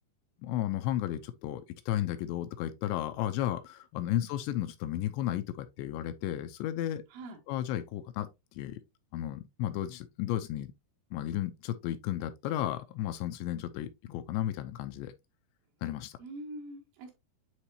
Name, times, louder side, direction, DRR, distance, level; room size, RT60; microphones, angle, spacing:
voice 1, 0.4-7.0 7.5-8.3 8.6-8.8 9.1-10.7 11.1-15.1 15.8-16.1, left 12 dB, 85° left, 2.8 m, -33 dB
voice 2, 16.2-17.1, right 1 dB, 85° right, 4.2 m, -44 dB
9.7 x 3.6 x 2.7 m
omnidirectional pair, 5.2 m